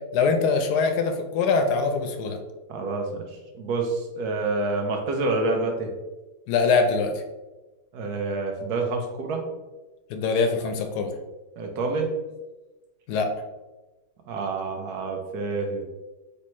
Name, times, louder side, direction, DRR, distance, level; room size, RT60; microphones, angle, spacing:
voice 1, 0.1-2.4 6.5-7.1 10.1-11.2 13.1-13.3, left 4 dB, 75° left, 5 dB, 1.1 m, -23 dB
voice 2, 2.7-5.9 7.9-9.4 11.6-12.1 14.3-15.8, right 3 dB, 75° right, 3 dB, 1.2 m, -28 dB
4.2 x 3.3 x 3.0 m, 1.1 s
omnidirectional pair, 1.8 m